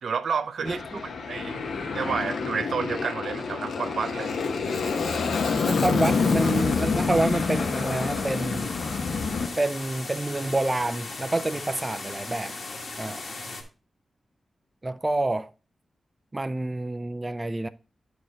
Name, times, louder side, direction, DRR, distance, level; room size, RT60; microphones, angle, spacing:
voice 1, 0.0-0.8 1.3-1.6 1.9-4.4 13.4-13.6, right 6 dB, 75° right, 0.6 m, -30 dB
Aircraft, 0.6-9.5, left 4 dB, 85° left, 1.0 m, -27 dB
voice 2, 0.6-1.0 5.6-8.7 9.6-12.5 13.0-13.2 14.8-15.5 16.3-17.7, right 2 dB, 20° right, 0.3 m, -28 dB
sound 1, 6.0-13.6, left 3 dB, 50° left, 1.5 m, -37 dB
8.7 x 4.8 x 3.9 m
wide cardioid pair, 145°, 0 cm